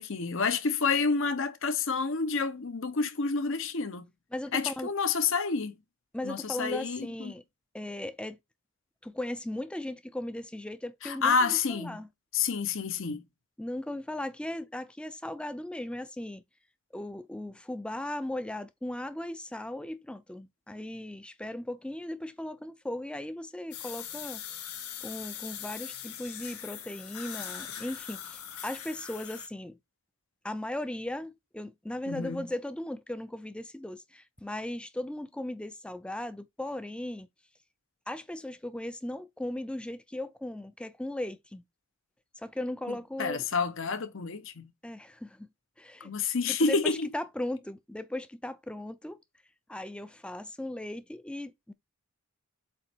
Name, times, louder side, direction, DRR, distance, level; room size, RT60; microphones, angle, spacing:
voice 1, 0.0-4.1 4.5-5.8 6.2-7.3 11.0-12.0 12.3-13.2 32.1-32.5 42.9-44.7 46.0-47.1, left 4 dB, 60° left, 0.9 m, -29 dB
voice 2, 4.3-4.9 6.1-7.4 7.7-8.4 9.0-12.1 13.6-16.4 16.9-24.4 25.0-29.8 30.4-37.3 38.1-41.6 42.4-43.4 44.8-45.5 45.8-46.1 46.5-49.2 49.7-51.7, left 1 dB, 5° left, 0.4 m, -37 dB
sound 1, 23.7-29.5, left 9 dB, 85° left, 1.5 m, -41 dB
7.6 x 3.0 x 4.4 m
head